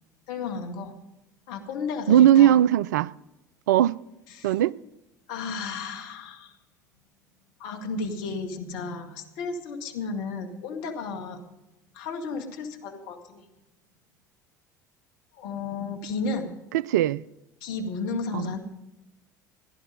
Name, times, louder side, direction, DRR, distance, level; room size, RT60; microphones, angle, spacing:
voice 1, 0.3-1.0 1.5-2.6 4.3-4.5 5.3-6.6 7.6-11.4 11.9-13.4 15.4-16.5 17.6-18.6, left 4 dB, 60° left, 2.0 m, -33 dB
voice 2, 2.1-3.1 3.7-4.0 4.4-4.7 16.7-17.2 18.3-18.5, right 11 dB, 70° right, 0.4 m, -19 dB
16.0 x 11.0 x 5.3 m
figure-of-eight pair, 65°, 10 cm